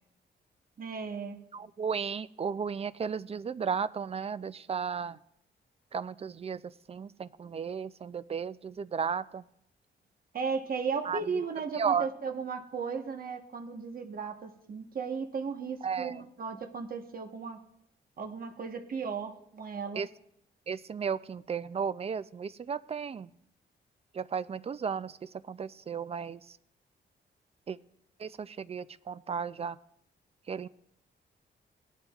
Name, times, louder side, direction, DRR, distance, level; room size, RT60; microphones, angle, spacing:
voice 1, 0.8-1.4 10.3-17.6 18.2-20.0, right 5 dB, 50° right, 4 dB, 1.2 m, -35 dB
voice 2, 1.5-5.2 5.9-9.4 11.0-11.2 11.7-12.1 15.8-16.2 20.0-20.1 20.7-23.3 24.1-26.6 27.7-27.8 28.2-29.8 30.5-30.7, right 6 dB, 30° right, 16 dB, 0.4 m, -34 dB
18.5 x 11.0 x 2.4 m, 0.76 s
cardioid pair, 115°, 19 cm